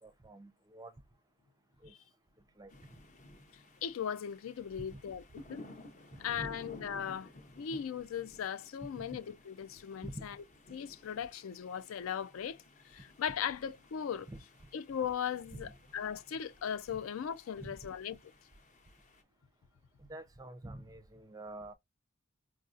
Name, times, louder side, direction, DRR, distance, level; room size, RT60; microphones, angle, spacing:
voice 1, 0.0-0.9 1.8-1.9 2.6-2.7 4.9-5.0 6.3-6.5 10.0-10.3 14.3-14.4 15.5-15.7 16.9-17.0 17.6-17.8 20.0-21.7, right 1 dB, 20° right, 0.5 m, -47 dB
sound 1, 2.7-19.2, left 2 dB, 40° left, 0.7 m, -56 dB
voice 2, 3.8-5.2 5.5-5.6 6.2-7.3 7.6-10.4 10.7-12.6 12.8-14.3 14.7-18.3, left 8 dB, 75° left, 0.4 m, -38 dB
4.8 x 2.6 x 2.4 m
head